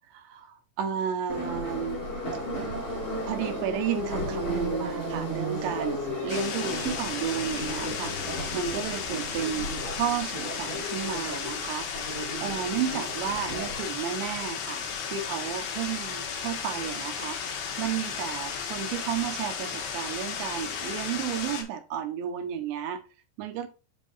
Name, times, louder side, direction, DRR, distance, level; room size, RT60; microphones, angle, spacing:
voice 1, 0.1-2.0 3.3-8.1 8.5-11.9 12.4-23.0 23.4-23.7, right 8 dB, 90° right, 3.3 m, -32 dB
Subway metro underground, 1.3-13.8, equal, 30° left, 4.3 m, -34 dB
sound 1, 6.3-21.6, left 7 dB, 70° left, 3.4 m, -34 dB
8.1 x 5.5 x 2.6 m
omnidirectional pair, 4.9 m